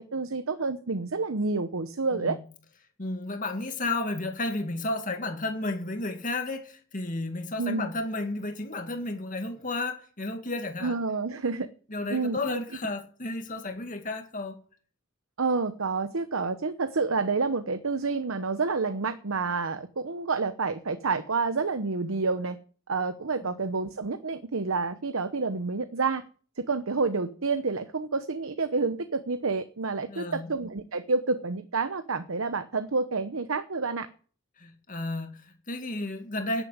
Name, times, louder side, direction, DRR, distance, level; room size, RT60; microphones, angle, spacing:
voice 1, 0.1-2.4 7.6-7.9 10.8-11.7 12.1-12.6 15.4-22.6 22.9-26.2 26.6-34.1, right 4 dB, 90° right, 0.9 m, -29 dB
voice 2, 3.0-11.0 11.9-14.6 23.4-23.6 30.1-30.5 34.6-36.6, left 2 dB, 40° left, 2.0 m, -32 dB
10.0 x 9.3 x 9.5 m
head